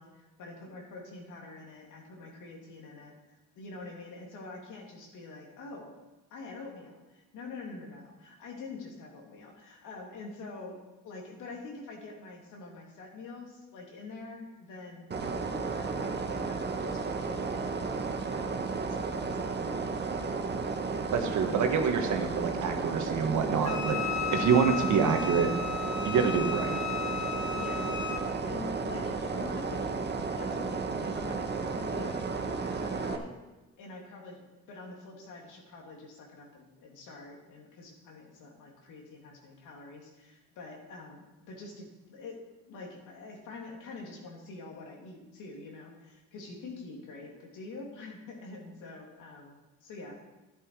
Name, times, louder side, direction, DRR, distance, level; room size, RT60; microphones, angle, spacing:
voice 1, 0.0-3.1 3.5-5.9 6.3-18.6 18.9-19.7 20.0-20.5 27.5-28.0 28.2-29.9 30.4-33.3 33.8-42.4 42.7-50.2, left 3 dB, 90° left, -1 dB, 2.9 m, -46 dB
sound 1, 15.1-33.2, right 4 dB, 35° right, 1.3 m, -33 dB
voice 2, 21.1-24.0 24.3-25.5 26.0-26.8, right 6 dB, 75° right, 5 dB, 1.6 m, -26 dB
Wind instrument woodwind instrument, 23.6-28.3, left 8 dB, 60° left, 1.1 m, -35 dB
11.5 x 10.5 x 4.8 m, 1.1 s
cardioid pair, 90°, 30 cm